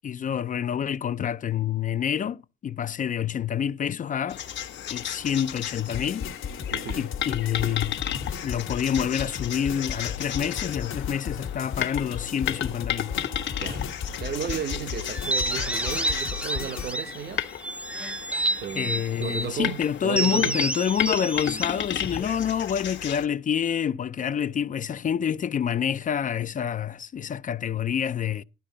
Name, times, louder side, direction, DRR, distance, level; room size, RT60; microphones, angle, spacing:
voice 1, 0.0-4.4 4.9-6.3 7.0-8.0 8.4-13.1 18.8-28.4, left 8 dB, 40° left, 0.4 m, -27 dB
sound 1, 4.3-23.3, left 10 dB, 65° left, 1.2 m, -34 dB
sound 2, 5.9-16.9, left 7 dB, 85° left, 1.3 m, -35 dB
voice 2, 6.7-7.1 13.6-13.9 14.2-17.4 18.6-20.7 21.0-21.1, right 8 dB, 55° right, 0.9 m, -34 dB
sound 3, 15.1-17.2 17.6-19.5 20.1-22.6, right 2 dB, 5° right, 0.7 m, -30 dB
11.5 x 9.7 x 3.9 m
cardioid pair, 90°, 20 cm